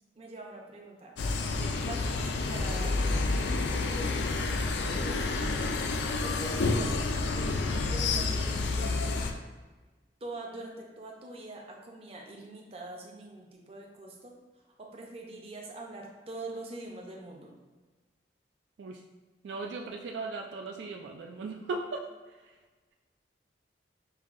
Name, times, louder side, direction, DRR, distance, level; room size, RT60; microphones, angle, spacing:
voice 1, 0.1-1.1 1.7-5.7 6.2-8.9 10.2-14.3 14.7-17.5, right 2 dB, 35° right, 0 dB, 0.6 m, -44 dB
sound 1, 1.2-9.3, left 3 dB, 70° left, 0.4 m, -29 dB
voice 2, 1.5-1.8 18.8-19.0 19.4-22.5, right 3 dB, 70° right, 2 dB, 0.3 m, -38 dB
5.5 x 2.6 x 2.5 m, 1.3 s
head